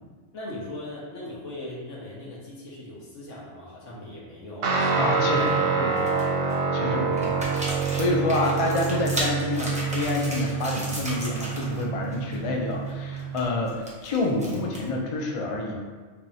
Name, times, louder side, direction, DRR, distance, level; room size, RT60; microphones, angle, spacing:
voice 1, 0.3-5.9 6.9-7.4, left 1 dB, 80° left, -5 dB, 1.3 m, -39 dB
Guitar, 4.6-13.4, right 5 dB, 60° right, 0.7 m, -27 dB
voice 2, 5.0-5.9 6.7-15.7, left 2 dB, 55° left, 0 dB, 0.3 m, -28 dB
sound 1, 5.0-5.5 5.9-6.5 7.1-11.8 12.1-12.4 12.7-15.0, right 1 dB, 10° right, 0.4 m, -35 dB
4.6 x 2.8 x 2.7 m, 1.4 s
omnidirectional pair, 1.3 m